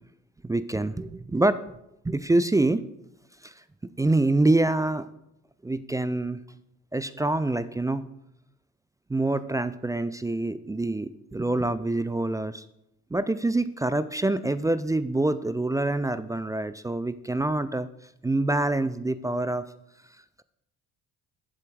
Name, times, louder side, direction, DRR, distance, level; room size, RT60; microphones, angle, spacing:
voice 1, 0.4-1.6 2.0-2.8 3.4-3.5 4.0-5.1 5.6-6.4 6.9-8.1 9.1-12.6 13.1-17.9 18.2-19.6, right 2 dB, 10° right, 14 dB, 0.3 m, -26 dB
8.2 x 7.5 x 4.8 m, 0.84 s
hypercardioid pair, 50°, 40 cm